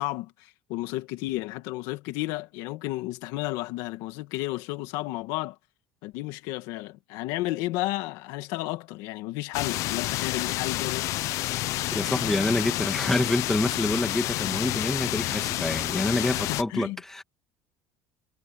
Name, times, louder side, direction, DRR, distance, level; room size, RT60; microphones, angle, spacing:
voice 1, 0.0-5.6 6.0-11.1 16.5-17.0, left 18 dB, 70° left, 2.0 m, -32 dB
sound 1, 9.5-16.6, left 17 dB, 50° left, 0.5 m, -29 dB
voice 2, 11.9-17.2, left 2 dB, 5° left, 2.1 m, -27 dB
cardioid pair, 165°, 7 cm